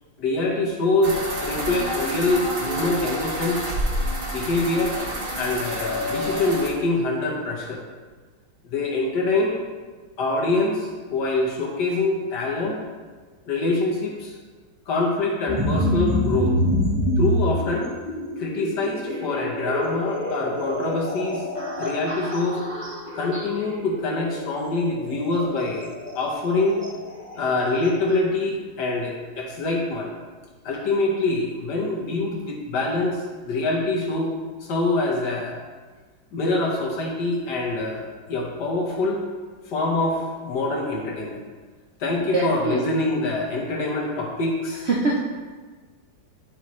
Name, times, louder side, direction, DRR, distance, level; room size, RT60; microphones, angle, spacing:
voice 1, 0.2-3.7 4.3-5.0 5.3-7.8 8.6-9.6 10.2-12.8 13.5-14.4 14.9-16.5 17.2-17.9 18.4-21.4 21.8-22.6 23.1-26.8 27.3-30.1 30.6-34.3 34.6-35.6 36.3-39.2 39.7-41.4 42.0-44.9, left 2 dB, 65° left, -1 dB, 1.6 m, -25 dB
sound 1, 1.0-6.7, equal, 40° right, 1.0 m, -28 dB
sound 2, 15.5-28.2, left 1 dB, 20° right, 1.2 m, -27 dB
voice 2, 42.1-43.0 44.9-45.2, right 3 dB, 70° right, -3 dB, 0.6 m, -24 dB
10.5 x 4.4 x 3.1 m, 1.4 s
omnidirectional pair, 2.1 m